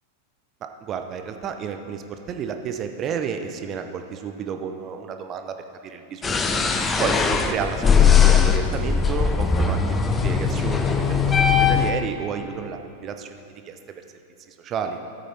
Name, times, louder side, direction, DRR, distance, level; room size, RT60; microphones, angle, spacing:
voice 1, 0.6-5.6 5.8-6.6 7.0-10.0 10.2-14.0 14.5-15.0, right 7 dB, 30° right, 6 dB, 0.8 m, -31 dB
sound 1, 6.2-11.9, left 6 dB, 15° left, 0.7 m, -19 dB
13.5 x 8.4 x 4.4 m, 2.5 s
figure-of-eight pair, 90°, 0 cm